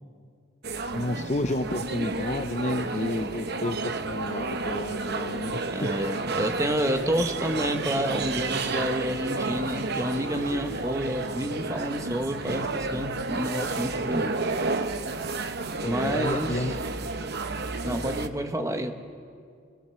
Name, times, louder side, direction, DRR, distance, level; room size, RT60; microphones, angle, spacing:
sound 1, 0.6-18.3, right 3 dB, 50° right, 0.9 m, -31 dB
voice 1, 0.9-5.9 15.8-16.9, left 2 dB, 35° left, 9 dB, 0.6 m, -31 dB
voice 2, 5.7-14.4 15.9-16.7 17.8-18.9, equal, 15° right, 6 dB, 1.1 m, -29 dB
22.5 x 21.5 x 6.9 m, 2.2 s
head